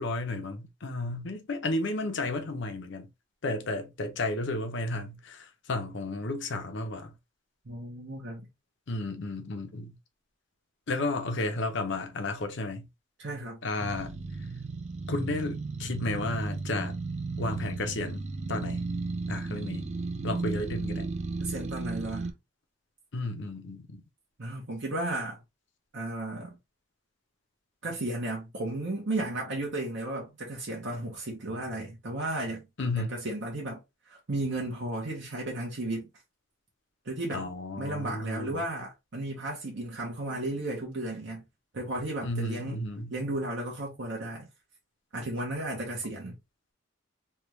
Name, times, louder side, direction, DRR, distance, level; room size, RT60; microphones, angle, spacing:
voice 1, 0.0-3.1 3.4-7.1 8.9-9.9 10.9-12.9 13.6-14.2 15.1-17.0 17.4-18.2 18.5-18.8 19.3-19.9 20.2-21.1 23.1-24.0 32.8-33.1 37.3-38.6 42.2-43.1, left 2 dB, 65° left, 0.7 m, -33 dB
voice 2, 7.7-8.5 13.2-13.7 21.4-22.3 24.4-25.4 25.9-26.6 27.8-32.7 33.0-33.8 34.1-36.1 37.0-37.5 37.8-41.5 41.7-42.8 43.1-44.4 45.1-46.4, right 1 dB, 65° right, 1.0 m, -34 dB
sound 1, 13.8-22.3, right 3 dB, 35° right, 0.4 m, -34 dB
3.4 x 2.3 x 3.0 m
head